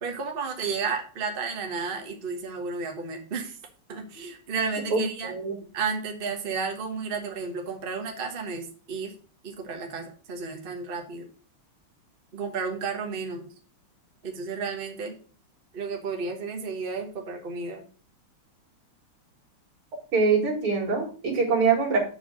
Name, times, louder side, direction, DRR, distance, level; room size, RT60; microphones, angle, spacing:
voice 1, 0.0-3.6 3.9-5.3 5.7-9.1 9.4-11.3 12.3-13.5 14.2-15.2 15.7-17.8, right 5 dB, 30° right, 2 dB, 1.2 m, -32 dB
voice 2, 4.9-5.6 20.1-22.0, right 4 dB, 80° right, 1 dB, 2.9 m, -24 dB
7.4 x 4.6 x 6.2 m, 0.41 s
omnidirectional pair, 2.4 m